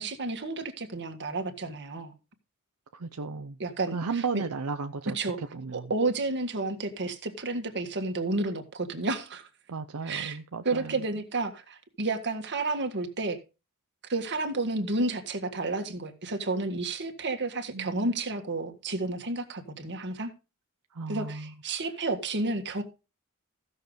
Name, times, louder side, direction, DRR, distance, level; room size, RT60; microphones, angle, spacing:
voice 1, 0.0-2.1 3.6-4.4 5.1-5.4 5.7-9.5 10.0-10.4 10.7-13.4 14.1-20.3 21.1-22.8, right 2 dB, 55° right, 1.7 m, -31 dB
voice 2, 2.9-3.6 3.9-5.9 9.7-11.0 17.7-18.1 20.9-21.5, right 4 dB, 80° right, 0.7 m, -34 dB
15.0 x 6.6 x 4.0 m
head